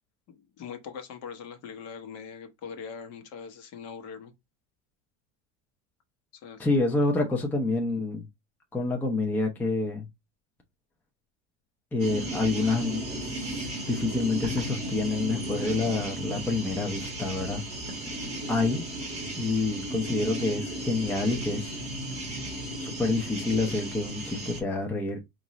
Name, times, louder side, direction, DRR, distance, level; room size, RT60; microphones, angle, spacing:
voice 1, 0.3-4.3 6.3-6.6, left 6 dB, 45° left, 0.9 m, -42 dB
voice 2, 6.6-8.3 8.7-10.1 11.9-17.6 18.5-18.8 19.4-21.8 22.8-25.2, left 3 dB, 5° left, 0.6 m, -28 dB
sound 1, 12.0-24.6, right 1 dB, 20° right, 1.6 m, -35 dB
5.2 x 2.5 x 3.0 m
cardioid pair, 145°, 34 cm